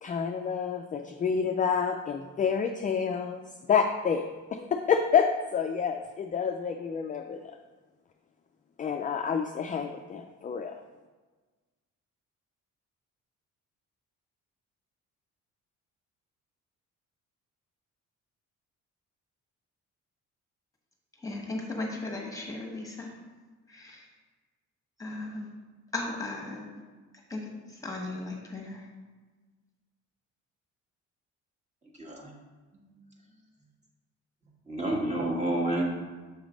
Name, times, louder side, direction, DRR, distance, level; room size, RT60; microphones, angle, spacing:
voice 1, 0.0-3.4 3.7-4.2 4.5-7.5 8.8-10.7, left 6 dB, 25° left, 5 dB, 0.3 m, -28 dB
voice 2, 21.2-23.1 23.7-24.1 25.0-25.5 25.9-26.6 27.3-28.9, left 2 dB, 10° left, -1 dB, 1.4 m, -36 dB
voice 3, 31.9-32.3 32.7-32.9 34.7-35.8, right 1 dB, 25° right, -3 dB, 1.6 m, -29 dB
7.1 x 3.1 x 5.1 m, 1.3 s
cardioid pair, 90°, 30 cm